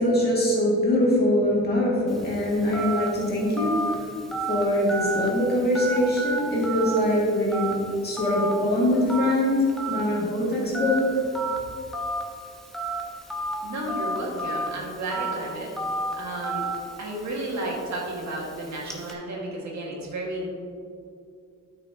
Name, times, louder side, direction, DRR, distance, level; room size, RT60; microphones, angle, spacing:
voice 1, 0.0-4.1 4.5-7.8 8.0-11.2, left 1 dB, 30° left, -5 dB, 2.1 m, -23 dB
Telephone, 2.1-19.1, right 2 dB, ahead, 0.9 m, -33 dB
voice 2, 13.6-15.9 16.1-16.7 17.0-20.5, right 1 dB, 60° right, -2 dB, 1.8 m, -32 dB
12.5 x 6.1 x 2.8 m, 2.4 s
wide cardioid pair, 170°, 32 cm